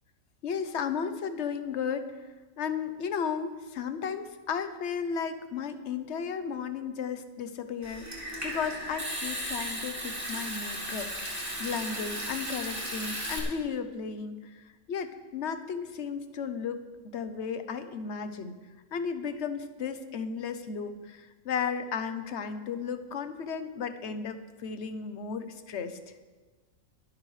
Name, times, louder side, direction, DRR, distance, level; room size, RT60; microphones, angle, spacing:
voice 1, 0.4-2.1 2.6-14.6 14.9-18.6 18.9-26.0, left 6 dB, 60° left, 9 dB, 1.1 m, -34 dB
Water tap faucet / Sink (filling or washing) / Trickle dribble, 7.8-13.4, equal, 10° right, 2.7 m, -35 dB
23.0 x 10.0 x 3.3 m, 1.3 s
omnidirectional pair, 1.4 m